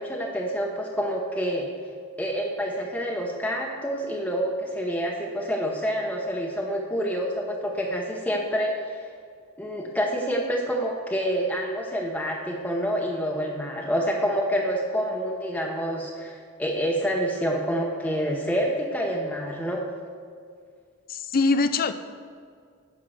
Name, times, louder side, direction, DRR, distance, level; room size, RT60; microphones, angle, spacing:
voice 1, 0.0-1.7 2.2-9.0 9.6-19.8, equal, 5° left, -1 dB, 0.8 m, -27 dB
voice 2, 21.1-21.9, left 3 dB, 45° left, 11 dB, 0.5 m, -22 dB
10.0 x 5.9 x 6.4 m, 2.1 s
head